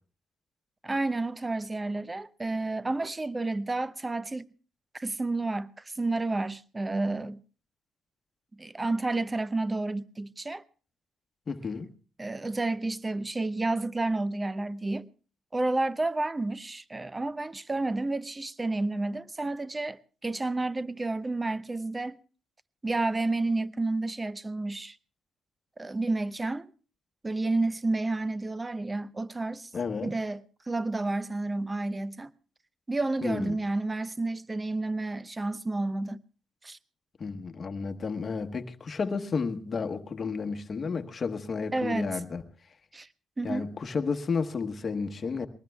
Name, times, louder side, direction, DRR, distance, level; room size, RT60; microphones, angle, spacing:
voice 1, 0.8-4.5 4.9-7.4 8.6-10.6 12.2-15.1 15.5-22.2 22.8-25.0 25.8-26.7 27.2-29.7 30.0-32.3 32.9-36.2 36.6-36.8 41.7-42.2 42.9-43.1 43.4-43.7, right 2 dB, 20° right, 0.6 m, -30 dB
voice 2, 11.5-11.9 29.7-30.1 33.2-33.5 37.2-42.4 43.4-45.5, left 5 dB, 40° left, 1.2 m, -32 dB
22.5 x 19.5 x 2.3 m
cardioid pair, 90°, 0 cm